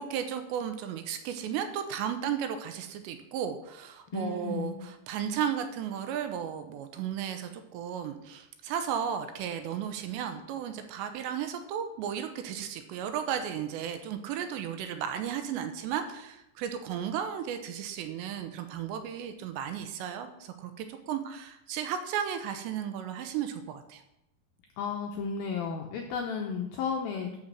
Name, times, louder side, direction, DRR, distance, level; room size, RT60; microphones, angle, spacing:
voice 1, 0.0-24.0, right 8 dB, 80° right, 7 dB, 2.8 m, -34 dB
voice 2, 4.1-4.8 24.8-27.4, left 6 dB, 85° left, 2 dB, 2.1 m, -33 dB
11.5 x 5.1 x 7.3 m, 0.87 s
omnidirectional pair, 5.4 m